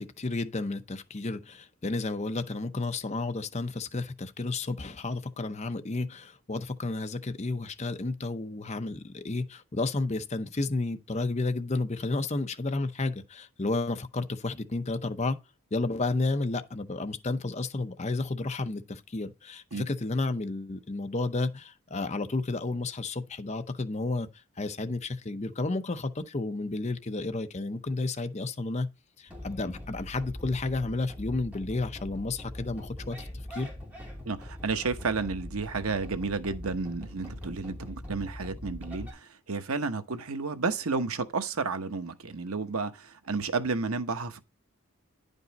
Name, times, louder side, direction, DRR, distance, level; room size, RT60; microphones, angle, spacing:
voice 1, 0.0-15.4 15.7-24.3 24.6-28.9 29.2-33.7, left 3 dB, 30° left, 0.7 m, -32 dB
sound 1, 29.3-39.1, left 1 dB, 5° right, 3.1 m, -42 dB
voice 2, 34.2-44.4, right 4 dB, 80° right, 1.0 m, -31 dB
10.5 x 5.4 x 4.0 m
head